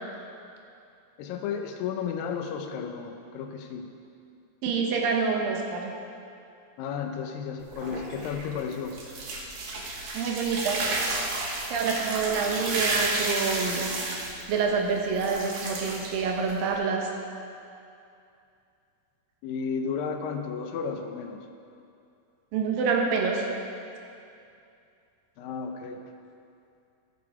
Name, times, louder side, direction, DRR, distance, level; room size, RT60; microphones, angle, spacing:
voice 1, 1.2-3.9 6.8-9.0 19.4-21.5 25.4-26.0, left 6 dB, 80° left, 5 dB, 2.4 m, -33 dB
voice 2, 4.6-5.9 10.1-10.9 11.7-13.9 14.5-17.1 22.5-23.4, right 5 dB, 75° right, 1 dB, 2.7 m, -27 dB
sound 1, 7.6-16.7, right 2 dB, 60° right, 2.0 m, -32 dB
13.0 x 7.6 x 4.8 m, 2.5 s
omnidirectional pair, 4.1 m